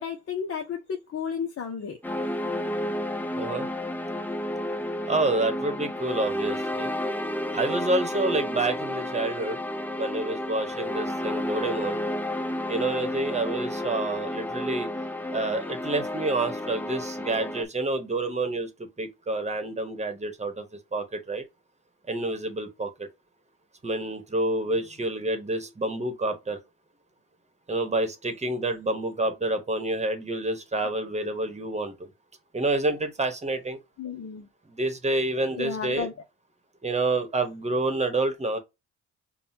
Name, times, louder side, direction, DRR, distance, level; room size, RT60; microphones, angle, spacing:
voice 1, 0.0-2.0 34.0-34.5 35.5-36.1, left 7 dB, 50° left, 0.8 m, -33 dB
sound 1, 2.0-17.6, left 1 dB, 5° left, 0.5 m, -31 dB
voice 2, 3.4-3.7 5.1-7.0 7.5-9.6 9.9-12.0 12.7-14.9 15.3-18.7 19.0-20.7 20.9-21.5 22.1-23.1 23.8-26.6 27.7-32.1 32.5-33.8 34.7-36.1 36.8-38.6, right 2 dB, 20° right, 1.1 m, -28 dB
5.4 x 2.3 x 2.8 m
cardioid pair, 90°, 30 cm